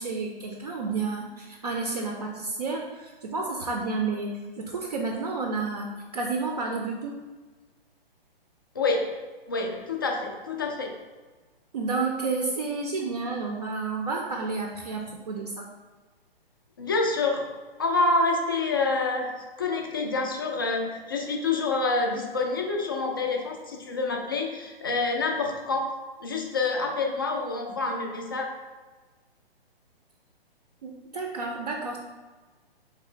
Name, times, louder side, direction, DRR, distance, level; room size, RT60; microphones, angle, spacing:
voice 1, 0.0-7.2 11.7-15.7 30.8-32.0, right 3 dB, 40° right, 1 dB, 0.5 m, -31 dB
voice 2, 8.8-9.1 9.5-10.9 16.8-17.4 17.8-19.3 19.6-25.8 26.2-28.5, left 3 dB, 25° left, 2 dB, 0.3 m, -27 dB
3.8 x 3.2 x 3.6 m, 1.3 s
figure-of-eight pair, 125°, 30 cm